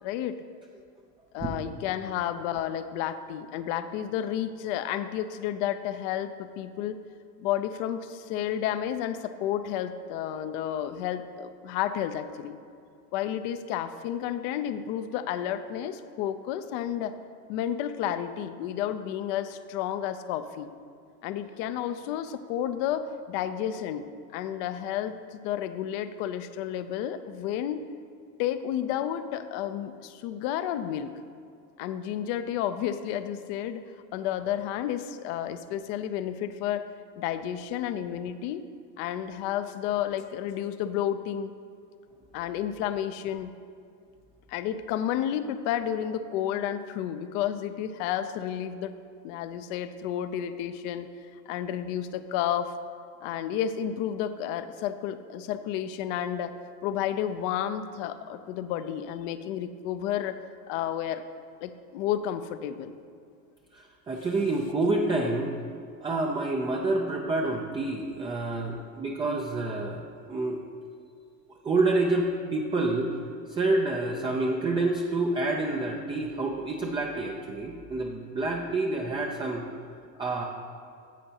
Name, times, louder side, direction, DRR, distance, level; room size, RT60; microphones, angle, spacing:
voice 1, 0.0-0.4 1.3-7.0 7.4-12.6 13.1-17.2 17.5-20.7 21.2-24.0 24.3-27.8 28.4-31.1 31.8-33.9 34.1-36.8 37.2-38.6 39.0-41.5 42.3-43.5 44.5-49.0 49.2-51.1 51.5-52.8 53.2-56.6 56.8-60.4 60.7-61.2 61.6-63.0, left 10 dB, 50° left, 11 dB, 0.5 m, -31 dB
voice 2, 63.7-65.5 66.0-70.6 71.6-73.1 73.5-79.6 80.2-80.4, right 2 dB, 10° right, 0 dB, 0.3 m, -28 dB
10.0 x 7.5 x 2.8 m, 2.4 s
hypercardioid pair, 80°, 50 cm